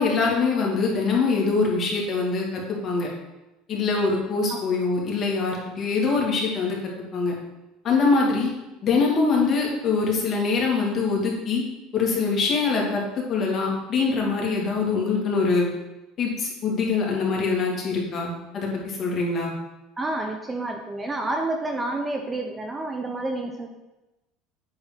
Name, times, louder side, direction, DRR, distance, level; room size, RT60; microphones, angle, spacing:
voice 1, 0.0-3.1 3.7-6.8 7.1-7.3 7.8-8.5 8.8-11.6 11.9-13.0 13.3-15.7 16.2-19.5, left 4 dB, 35° left, -2 dB, 2.6 m, -23 dB
voice 2, 20.0-23.7, right 2 dB, 15° right, 3 dB, 0.8 m, -29 dB
8.8 x 4.4 x 6.0 m, 1.0 s
supercardioid pair, 125°, 0 cm